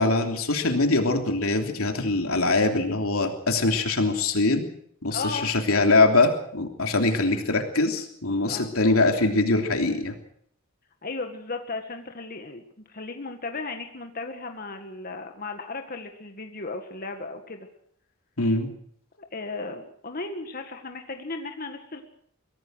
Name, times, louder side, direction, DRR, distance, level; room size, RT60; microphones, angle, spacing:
voice 1, 0.0-4.7 5.0-10.1 18.4-18.7, left 2 dB, 90° left, 4 dB, 3.2 m, -23 dB
voice 2, 5.1-5.5 8.4-8.7 11.0-17.7 19.2-22.0, left 3 dB, 45° left, 5 dB, 1.9 m, -35 dB
23.5 x 17.0 x 6.5 m, 0.66 s
head